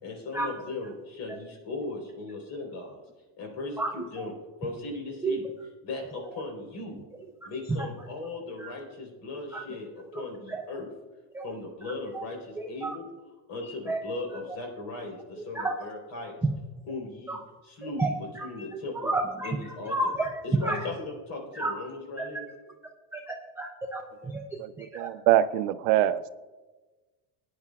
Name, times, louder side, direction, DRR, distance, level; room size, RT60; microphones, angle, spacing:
voice 1, 0.0-3.0 3.4-4.3 4.6-5.4 5.8-7.0 7.4-10.9 11.4-13.1 13.5-16.4 16.9-17.4 17.6-18.1 18.4-19.1 19.4-19.9 20.6-22.4, left 2 dB, 70° left, 1 dB, 4.0 m, -37 dB
voice 2, 10.1-10.6 11.3-11.5 12.1-12.3 12.6-13.0 13.6-14.0 14.5-14.6 15.4-15.8 16.4-16.5 17.3-17.4 17.8-19.6 19.9-20.9 21.5-21.8 22.2-22.3 23.1-25.1, right 2 dB, 5° right, 0 dB, 0.4 m, -31 dB
voice 3, 24.6-26.3, right 12 dB, 85° right, 13 dB, 0.6 m, -24 dB
20.0 x 9.6 x 2.4 m, 1.2 s
cardioid pair, 150°, 47 cm